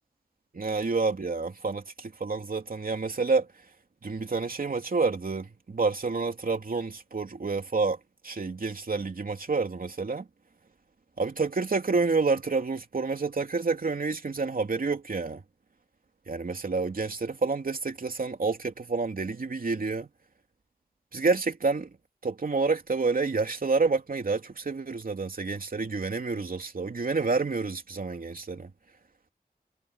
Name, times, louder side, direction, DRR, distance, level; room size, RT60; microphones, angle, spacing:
voice 1, 0.5-3.5 4.0-8.0 8.2-10.3 11.2-15.4 16.3-20.1 21.1-21.9 22.2-28.7, right 4 dB, 65° right, 3.1 m, -28 dB
wide cardioid pair, 70°, 16 cm